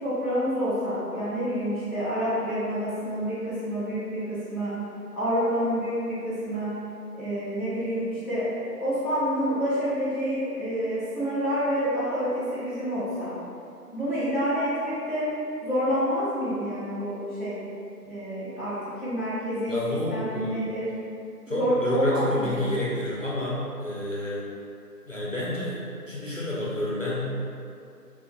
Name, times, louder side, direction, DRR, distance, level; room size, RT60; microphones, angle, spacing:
voice 1, 0.0-4.8 5.1-6.7 7.2-13.3 13.9-15.3 15.6-17.6 18.0-19.7 20.1-20.9 21.4-22.7, equal, ahead, -18 dB, 0.9 m, -28 dB
voice 2, 19.7-20.6 21.5-24.5 25.1-25.8 26.1-27.3, left 1 dB, 50° left, -7 dB, 0.7 m, -29 dB
3.5 x 2.5 x 3.5 m, 2.5 s
figure-of-eight pair, 175°, 49 cm